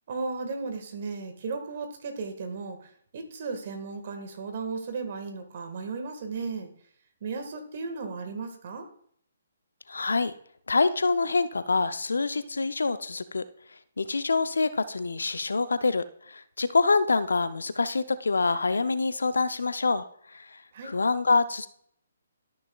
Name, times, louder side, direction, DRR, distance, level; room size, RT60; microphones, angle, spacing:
voice 1, 0.1-6.7 7.2-8.9 20.7-20.9, right 4 dB, 50° right, 6 dB, 1.7 m, -35 dB
voice 2, 9.9-10.3 10.7-13.4 14.0-21.7, left 3 dB, 75° left, 14 dB, 0.6 m, -26 dB
13.0 x 6.3 x 2.3 m, 0.63 s
figure-of-eight pair, 135°, 0 cm